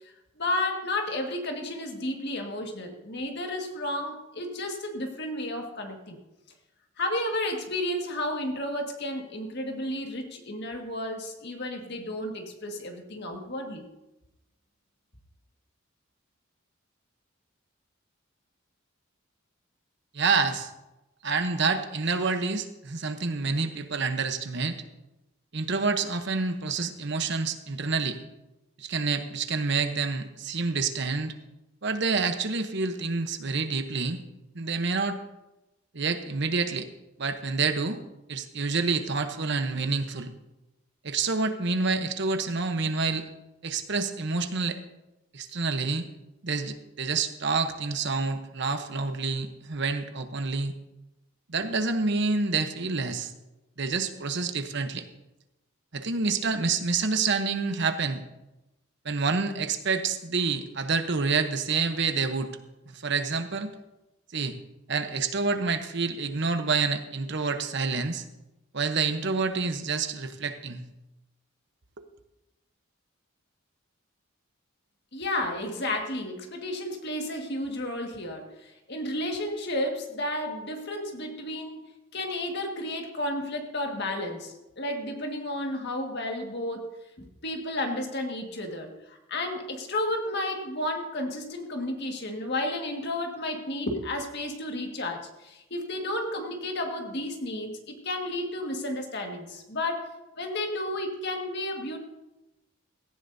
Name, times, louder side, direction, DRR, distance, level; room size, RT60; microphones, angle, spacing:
voice 1, 0.4-6.2 7.0-13.9 75.1-81.8 82.1-100.1 100.4-102.0, left 1 dB, 55° left, 3 dB, 1.8 m, -32 dB
voice 2, 20.1-20.7 21.2-24.8 25.5-28.2 28.8-31.3 31.8-34.2 34.5-35.2 35.9-36.9 37.2-38.0 38.3-40.3 41.0-43.3 43.6-44.8 45.3-46.1 46.4-50.7 51.5-53.3 53.8-55.0 55.9-58.2 59.0-62.5 62.9-63.7 64.3-64.6 64.9-68.2 68.7-70.8, right 4 dB, 55° right, 8 dB, 0.9 m, -28 dB
17.0 x 15.0 x 2.7 m, 0.96 s
head